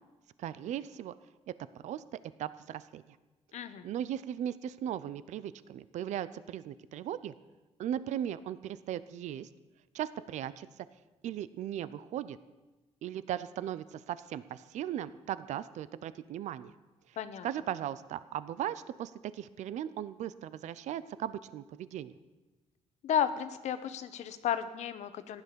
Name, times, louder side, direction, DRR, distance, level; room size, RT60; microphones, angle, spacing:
voice 1, 0.4-1.1 1.8-2.0 2.4-3.0 3.8-7.3 7.8-9.5 9.9-10.7 11.2-12.4 13.0-16.7 17.4-22.1, right 11 dB, 80° right, 15 dB, 0.6 m, -37 dB
voice 2, 3.5-3.9 17.2-17.5 23.0-25.4, left 9 dB, 75° left, 11 dB, 1.0 m, -33 dB
14.5 x 11.0 x 6.8 m, 1.2 s
cardioid pair, 125°, 12 cm